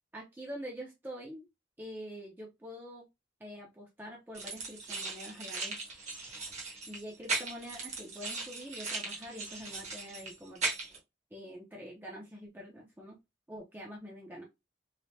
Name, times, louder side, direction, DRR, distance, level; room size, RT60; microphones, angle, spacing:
voice 1, 0.1-1.4 1.8-3.0 3.4-5.8 6.9-10.6 11.3-13.2 13.5-14.4, equal, 10° right, -2 dB, 0.5 m, -45 dB
sound 1, 4.3-11.0, right 3 dB, 40° right, 1.0 m, -38 dB
3.2 x 2.1 x 2.7 m, 0.22 s
head